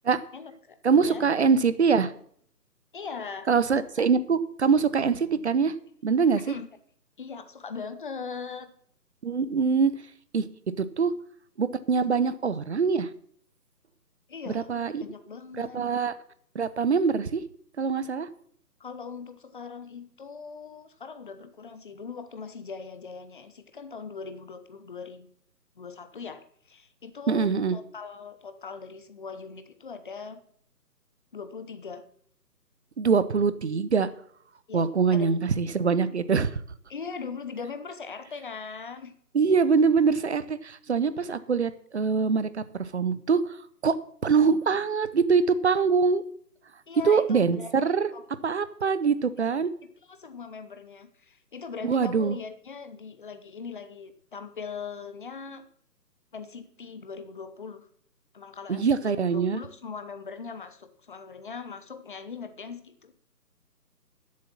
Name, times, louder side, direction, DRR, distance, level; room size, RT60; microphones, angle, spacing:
voice 1, 0.3-0.8 1.0-1.2 2.9-3.5 4.0-4.1 6.5-6.7 7.2-8.7 14.3-14.7 15.0-15.9 18.8-25.3 25.8-30.4 31.3-32.0 34.7-35.3 36.9-39.1 41.2-41.3 46.9-47.7 48.1-48.2 50.1-55.7 56.3-57.9 58.3-63.1, left 5 dB, 30° left, 11 dB, 0.9 m, -40 dB
voice 2, 0.8-2.1 3.5-5.7 6.0-6.5 9.2-9.9 10.3-10.5 10.8-11.1 11.6-13.1 14.5-15.0 15.6-16.1 16.5-17.4 17.8-18.3 27.3-27.8 33.0-34.1 34.7-36.6 39.3-43.6 43.8-44.0 44.2-46.2 47.0-48.1 48.4-49.7 51.8-52.4 58.7-59.6, right 5 dB, 45° right, 14 dB, 0.8 m, -24 dB
11.0 x 7.6 x 7.3 m, 0.62 s
figure-of-eight pair, 150°, 49 cm